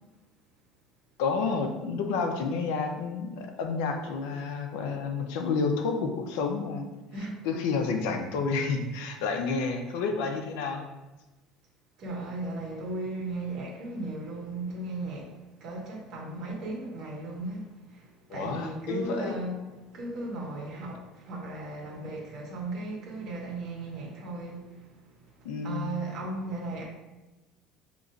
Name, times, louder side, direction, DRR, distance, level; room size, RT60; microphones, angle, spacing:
voice 1, 1.2-6.9 7.4-10.9 18.3-19.4 25.4-25.9, left 4 dB, 85° left, 4 dB, 0.6 m, -30 dB
voice 2, 7.1-7.6 12.0-26.8, right 2 dB, 50° right, -3 dB, 1.4 m, -37 dB
6.6 x 3.0 x 2.5 m, 1.1 s
cardioid pair, 140°, 0 cm